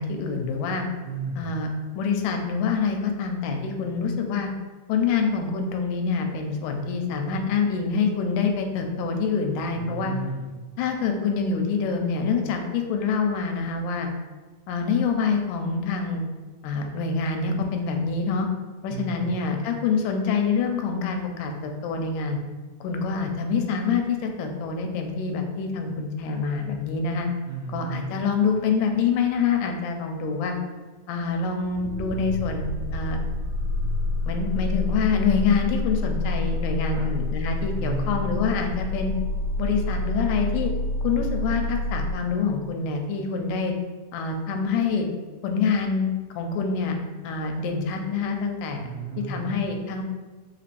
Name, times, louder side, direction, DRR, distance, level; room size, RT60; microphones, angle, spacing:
voice 1, 0.0-0.9 1.4-1.7 2.0-4.5 4.9-10.1 10.8-14.1 14.7-16.2 16.6-18.5 18.8-22.4 22.8-27.3 27.7-30.5 31.1-32.7 32.9-33.2 34.3-39.1 39.6-40.7 41.0-43.7 44.1-45.1 45.4-47.0 47.2-48.9 49.3-50.0, left 5 dB, 85° left, 4 dB, 2.1 m, -26 dB
voice 2, 1.0-1.5 9.7-10.5 18.9-19.3 27.5-28.2 36.9-37.1 37.7-38.3 48.8-49.6, right 4 dB, 85° right, -3 dB, 1.6 m, -33 dB
sound 1, 31.6-42.1, left 2 dB, 60° left, 1.4 m, -28 dB
5.3 x 3.3 x 2.5 m, 1.3 s
omnidirectional pair, 3.8 m